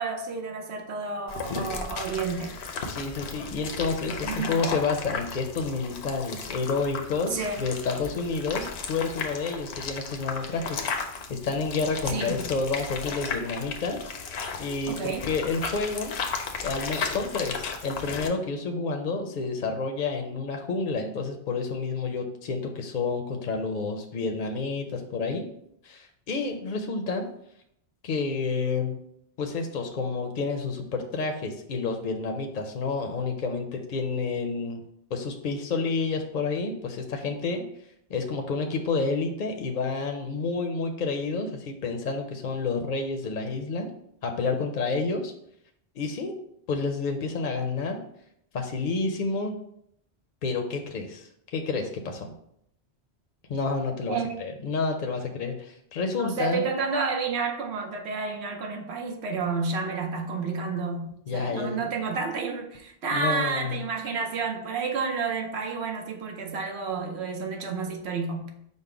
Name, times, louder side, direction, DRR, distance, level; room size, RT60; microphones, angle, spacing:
voice 1, 0.0-2.6 4.2-4.5 7.3-7.6 12.1-12.4 14.9-15.3 54.1-54.3 56.2-68.5, right 4 dB, 85° right, 4 dB, 1.0 m, -30 dB
sound 1, 1.3-18.3, left 5 dB, 80° left, 0.9 m, -35 dB
voice 2, 2.9-10.8 11.3-14.1 14.6-16.1 16.6-25.5 25.8-27.3 28.0-29.0 29.4-34.8 35.1-37.6 38.1-43.9 44.2-45.3 46.0-46.4 46.7-48.0 48.5-49.5 50.4-52.3 53.5-56.7 61.3-61.8 63.1-63.8, left 4 dB, 55° left, 4 dB, 0.6 m, -29 dB
5.3 x 2.1 x 4.8 m, 0.72 s
omnidirectional pair, 1.1 m